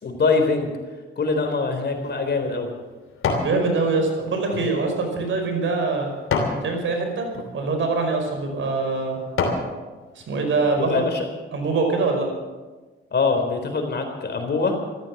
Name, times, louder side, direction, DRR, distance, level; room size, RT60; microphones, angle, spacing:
voice 1, 0.0-0.7 1.2-2.7 10.7-11.3 13.1-14.8, left 4 dB, 55° left, 5 dB, 4.0 m, -23 dB
sound 1, 1.7-3.6 4.0-6.6 7.2-7.5 8.2-8.3 8.8-9.7 10.2-10.3, left 4 dB, 85° left, 3.0 m, -28 dB
voice 2, 3.4-6.1 6.6-9.2 10.2-10.9 11.5-12.3, right 3 dB, 70° right, 3 dB, 5.2 m, -24 dB
14.5 x 14.0 x 7.3 m, 1.3 s
cardioid pair, 80°, 21 cm